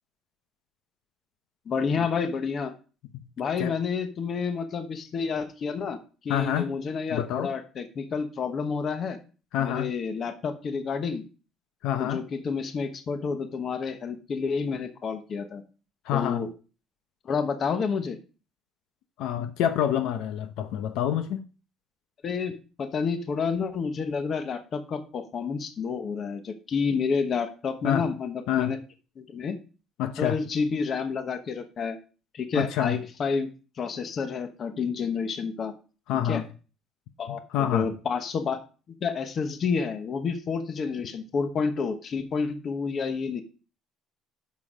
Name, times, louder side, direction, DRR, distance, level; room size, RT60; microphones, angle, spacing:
voice 1, 1.7-2.7 3.4-6.0 6.2-9.2 9.6-11.2 12.0-15.6 16.1-16.5 17.3-18.2 22.2-28.8 29.2-29.6 30.2-32.0 32.3-33.5 33.8-35.7 36.3-36.4 37.2-38.6 39.0-43.4, left 5 dB, 30° left, 1.1 m, -29 dB
voice 2, 6.3-6.7 7.1-7.5 9.5-9.9 11.8-12.2 16.0-16.4 19.2-21.4 27.8-28.1 28.5-28.7 30.0-30.4 32.5-33.0 36.1-36.5 37.3-37.9, left 10 dB, 70° left, 0.9 m, -27 dB
9.7 x 6.2 x 5.0 m
cardioid pair, 170°, 0 cm